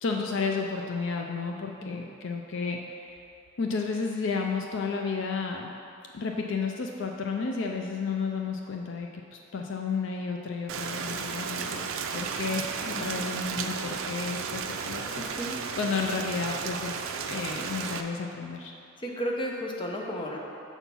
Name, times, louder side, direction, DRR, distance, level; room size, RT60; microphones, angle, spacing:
voice 1, 0.0-3.2 3.6-5.7 6.1-18.7, left 4 dB, 60° left, 2 dB, 0.4 m, -32 dB
Rain, 10.7-18.0, right 6 dB, 75° right, 0.4 m, -34 dB
voice 2, 19.0-20.4, equal, 25° left, -1 dB, 0.7 m, -33 dB
7.0 x 4.4 x 5.4 m, 2.7 s
head